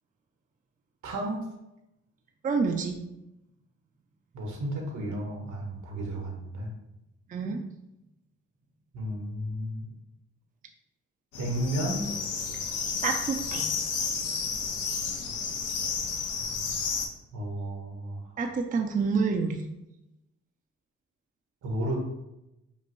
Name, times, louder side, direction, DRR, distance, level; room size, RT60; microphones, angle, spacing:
voice 1, 1.0-1.4 4.3-6.7 8.9-9.9 11.4-12.0 17.3-18.4 21.6-22.0, right 1 dB, 75° right, 0 dB, 1.3 m, -33 dB
voice 2, 2.4-3.0 7.3-7.6 13.0-13.7 18.4-19.7, right 4 dB, 25° right, 4 dB, 0.4 m, -28 dB
sound 1, 11.3-17.1, left 5 dB, 90° left, 0.7 m, -31 dB
5.4 x 2.5 x 3.1 m, 0.91 s
cardioid pair, 95°, 30 cm